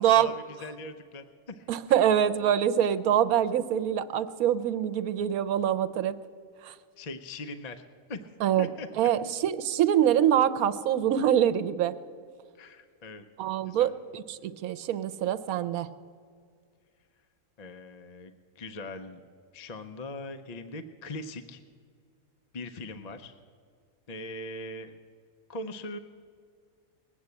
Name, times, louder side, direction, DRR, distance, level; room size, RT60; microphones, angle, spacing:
voice 1, 0.0-1.7 7.0-7.8 8.1-8.2 8.6-8.9 12.5-13.2 13.7-13.9 17.6-19.2 19.5-21.6 22.5-23.4 24.1-25.0 25.5-26.0, left 2 dB, 45° left, 8 dB, 0.5 m, -40 dB
voice 2, 1.7-6.2 6.6-6.7 8.4-8.7 9.0-11.9 13.4-15.9, right 10 dB, 90° right, 12 dB, 1.1 m, -25 dB
20.0 x 7.8 x 8.2 m, 2.1 s
omnidirectional pair, 1.5 m